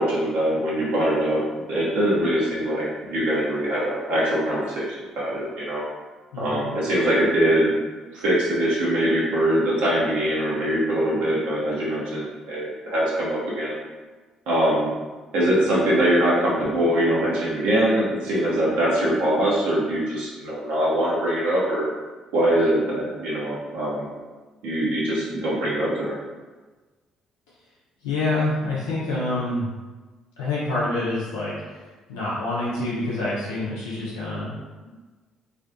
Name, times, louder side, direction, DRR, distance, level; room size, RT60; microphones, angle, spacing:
voice 1, 0.0-4.9 5.2-5.8 6.4-7.8 8.1-13.8 14.5-14.9 15.3-21.9 22.3-24.1 24.6-26.2, right 1 dB, 75° right, -6 dB, 0.6 m, -23 dB
voice 2, 6.3-6.8 28.0-29.7 30.4-31.8 32.1-34.9, left 2 dB, 85° left, -8 dB, 0.5 m, -27 dB
2.4 x 2.3 x 2.5 m, 1.3 s
hypercardioid pair, 50°, 2 cm